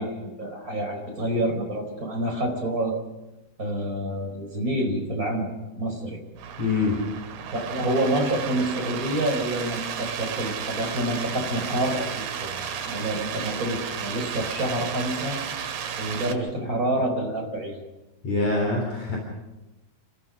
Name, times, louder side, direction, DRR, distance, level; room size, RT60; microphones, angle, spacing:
voice 1, 0.0-3.0 3.6-5.5 5.8-6.2 7.5-15.4 16.0-17.8 19.1-19.2, right 1 dB, 20° right, 2 dB, 4.8 m, -28 dB
sound 1, 6.4-16.3, right 8 dB, 85° right, 3.7 m, -33 dB
voice 2, 6.6-7.0 18.2-19.2, left 3 dB, 45° left, -1 dB, 4.8 m, -24 dB
29.5 x 16.0 x 6.3 m, 1.0 s
omnidirectional pair, 4.5 m